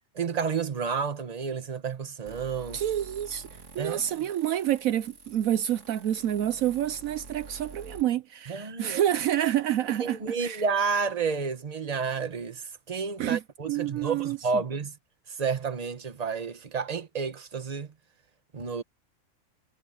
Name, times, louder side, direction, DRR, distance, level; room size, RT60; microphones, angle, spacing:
voice 1, 0.1-2.8 3.8-4.0 8.5-9.0 10.0-15.0 15.3-17.9 18.5-18.8, right 5 dB, 30° right, 1.2 m, -30 dB
sound 1, 2.3-8.0, right 3 dB, 55° right, 2.5 m, -48 dB
voice 2, 2.7-10.6 13.2-13.4 13.7-14.4, right 11 dB, 75° right, 1.0 m, -28 dB
omnidirectional pair, 1.5 m